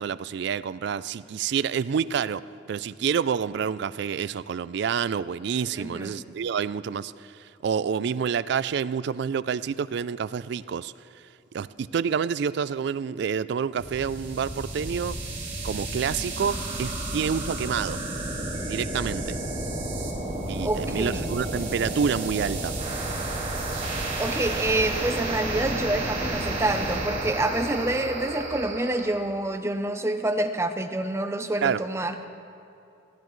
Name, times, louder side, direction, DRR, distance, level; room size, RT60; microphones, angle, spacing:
voice 1, 0.0-10.9 11.5-15.2 15.6-18.0 18.7-19.4 20.5-22.7 31.6-31.8, right 7 dB, 60° right, 17 dB, 0.3 m, -28 dB
voice 2, 5.8-6.2 20.6-21.3 24.0-32.3, right 1 dB, 15° right, 7 dB, 0.6 m, -27 dB
sound 1, 13.7-29.1, right 2 dB, 35° right, 3.2 m, -31 dB
22.0 x 16.0 x 3.1 m, 2.7 s
head